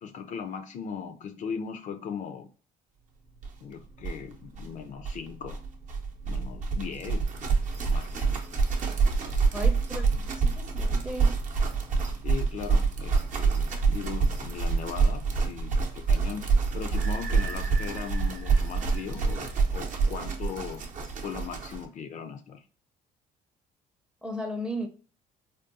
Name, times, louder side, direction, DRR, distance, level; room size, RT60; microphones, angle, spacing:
voice 1, 0.0-2.5 3.6-5.6 6.3-7.3 7.9-8.4 9.2-9.7 12.2-16.5 16.7-20.9 21.2-22.6, left 7 dB, 50° left, 0.4 m, -38 dB
sound 1, 3.4-3.5 3.7-3.8 4.0-21.9, right 4 dB, 50° right, 0.6 m, -27 dB
voice 2, 9.5-11.3 24.2-24.9, equal, 5° right, 0.5 m, -35 dB
sound 2, 17.0-19.8, right 6 dB, 90° right, 0.6 m, -43 dB
3.5 x 2.2 x 2.5 m
cardioid pair, 110°, 17 cm